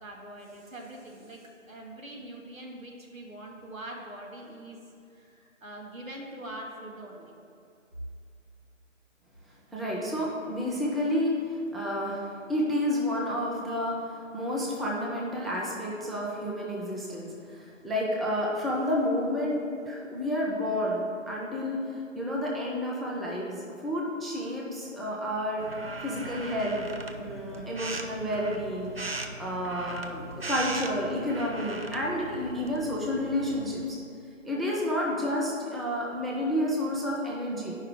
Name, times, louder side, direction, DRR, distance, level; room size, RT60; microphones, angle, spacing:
voice 1, 0.0-4.8 5.1-7.3, right 1 dB, 85° right, -1 dB, 1.8 m, -43 dB
voice 2, 9.7-25.7 26.0-26.9 27.2-28.9 29.4-34.0 34.4-37.8, left 1 dB, ahead, -4 dB, 0.4 m, -30 dB
sound 1, 25.6-33.9, right 2 dB, 50° right, 0.5 m, -39 dB
9.9 x 5.4 x 3.7 m, 2.6 s
figure-of-eight pair, 170°, 39 cm